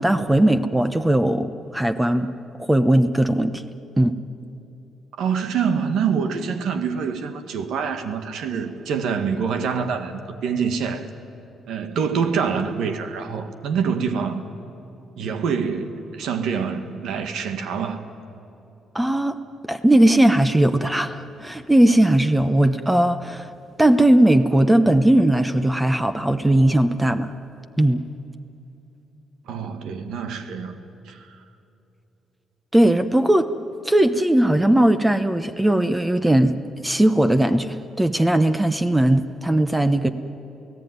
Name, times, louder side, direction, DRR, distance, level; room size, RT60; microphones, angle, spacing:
voice 1, 0.0-2.3 2.6-3.6 4.0-4.2 18.9-19.4 19.6-23.5 23.8-27.3 27.8-28.0 32.7-33.5 33.8-36.5 36.8-40.1, right 1 dB, 10° right, 10 dB, 0.9 m, -18 dB
voice 2, 5.2-11.0 11.7-14.4 15.2-18.0 29.5-30.8 31.1-31.3, right 6 dB, 80° right, 8 dB, 1.7 m, -25 dB
28.5 x 17.0 x 9.5 m, 2.8 s
cardioid pair, 90°, 0 cm